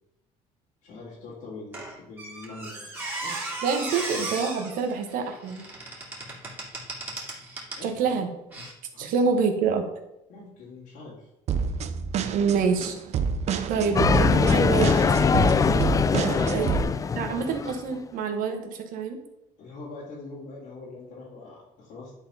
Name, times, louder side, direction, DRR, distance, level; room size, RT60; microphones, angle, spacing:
voice 1, 0.8-3.6 7.7-8.3 8.9-9.3 10.3-11.3 16.2-16.6 19.6-22.1, left 3 dB, 75° left, -7 dB, 2.5 m, -42 dB
Squeak, 1.7-7.9 8.5-8.7, right 2 dB, 15° right, 2.4 m, -36 dB
voice 2, 3.6-5.6 7.8-8.3 9.0-9.9 12.3-13.0 13.7-15.0 16.1-19.2, right 5 dB, 70° right, 5 dB, 1.4 m, -27 dB
sound 1, 11.5-16.8, right 6 dB, 50° right, 0.6 m, -28 dB
sound 2, 14.0-17.9, left 5 dB, 25° left, 0.4 m, -22 dB
10.5 x 4.1 x 4.2 m, 0.88 s
cardioid pair, 120°, 15 cm